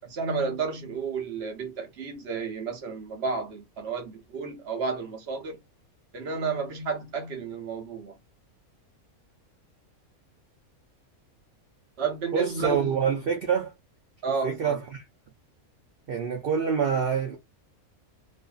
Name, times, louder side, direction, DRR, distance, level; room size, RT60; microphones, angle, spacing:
voice 1, 0.0-5.6 6.1-8.1 12.0-13.1 14.2-14.8, right 5 dB, 55° right, 0.9 m, -31 dB
voice 2, 12.3-13.7 14.4-15.0 16.1-17.4, right 6 dB, 70° right, 0.5 m, -26 dB
2.6 x 2.5 x 2.3 m
omnidirectional pair, 1.5 m